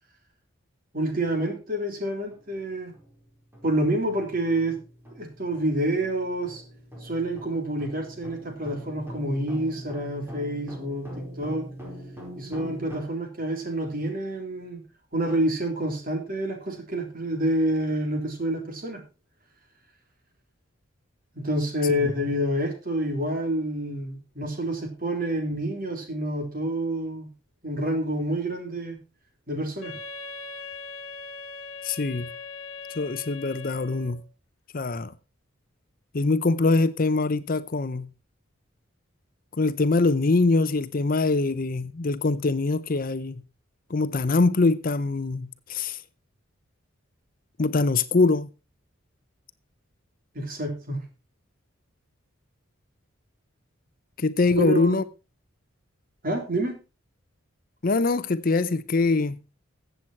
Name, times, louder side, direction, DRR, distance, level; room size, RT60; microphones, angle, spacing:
voice 1, 0.9-2.9 3.6-4.8 5.2-6.6 7.0-11.7 12.4-14.8 15.1-19.0 21.3-27.3 27.6-29.0 29.5-30.0 50.3-51.0 54.6-55.0 56.2-56.8, right 1 dB, 45° right, 3.6 m, -28 dB
sound 1, 2.3-2.4 2.9-3.1 3.5-13.0, equal, 10° right, 4.5 m, -42 dB
Wind instrument woodwind instrument, 29.8-34.2, left 4 dB, 80° left, 1.3 m, -40 dB
voice 2, 31.8-32.3 33.0-34.2 34.7-35.1 36.1-38.1 39.6-43.4 43.9-46.0 47.6-48.5 54.2-55.0 57.8-59.4, left 3 dB, 45° left, 0.6 m, -23 dB
15.0 x 7.9 x 4.5 m
head